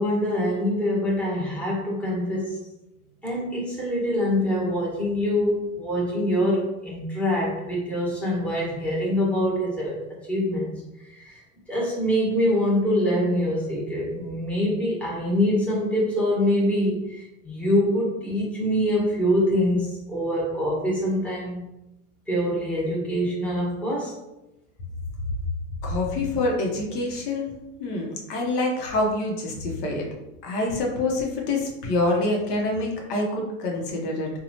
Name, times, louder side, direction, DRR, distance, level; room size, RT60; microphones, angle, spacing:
voice 1, 0.0-2.6 3.2-10.0 10.3-21.6 22.3-24.1, equal, 5° left, -7 dB, 1.0 m, -24 dB
voice 2, 25.8-27.5 27.8-30.1 30.4-34.3, left 2 dB, 75° left, 0 dB, 0.9 m, -26 dB
2.9 x 2.3 x 2.7 m, 0.94 s
hypercardioid pair, 105°, 47 cm